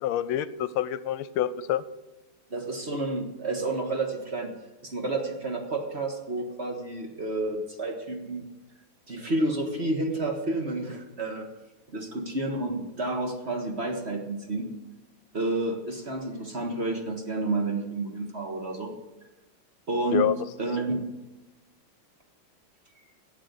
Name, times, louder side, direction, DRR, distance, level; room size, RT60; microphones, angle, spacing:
voice 1, 0.0-1.8 20.1-20.4, left 11 dB, 85° left, 16 dB, 1.5 m, -27 dB
voice 2, 2.5-4.5 4.8-8.5 9.1-11.5 11.9-14.7 15.3-18.9 19.9-20.3 20.6-21.0, right 2 dB, 35° right, 3 dB, 1.6 m, -30 dB
12.5 x 8.2 x 8.2 m, 1.1 s
omnidirectional pair, 2.3 m